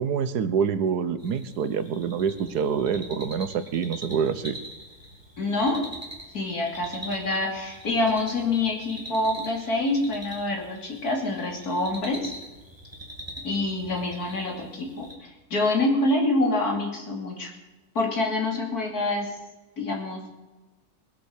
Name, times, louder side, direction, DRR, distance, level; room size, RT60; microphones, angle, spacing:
voice 1, 0.0-4.6, right 7 dB, 80° right, 12 dB, 1.5 m, -26 dB
sound 1, 1.2-15.1, right 1 dB, 15° right, 3.0 m, -43 dB
voice 2, 5.4-5.9 6.3-12.3 13.4-17.5 17.9-19.4 19.8-20.3, left 2 dB, 65° left, 1 dB, 3.3 m, -26 dB
21.0 x 8.0 x 6.6 m, 1.1 s
omnidirectional pair, 1.7 m